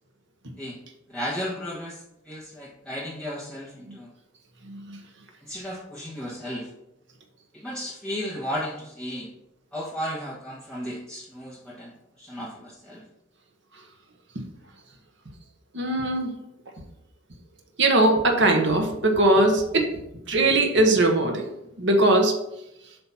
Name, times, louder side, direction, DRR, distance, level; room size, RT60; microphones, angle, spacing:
voice 1, 1.1-4.1 5.4-6.7 7.5-9.3 9.7-13.0, equal, 5° left, -9 dB, 1.3 m, -34 dB
voice 2, 15.7-16.3 17.8-19.9 20.3-21.5 21.8-22.3, right 2 dB, 65° right, 2 dB, 1.1 m, -20 dB
7.9 x 2.9 x 5.7 m, 0.86 s
head